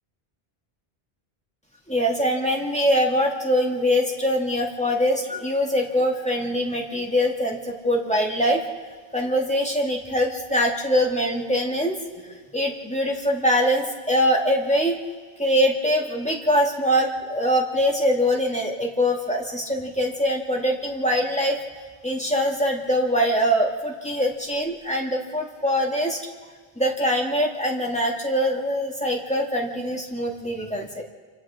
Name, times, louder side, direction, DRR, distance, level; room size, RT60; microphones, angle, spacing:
voice 1, 1.9-8.6 9.1-15.0 15.4-21.6 22.0-26.2 26.8-31.0, equal, 5° left, -1 dB, 1.9 m, -23 dB
28.5 x 25.0 x 3.7 m, 1.5 s
omnidirectional pair, 1.0 m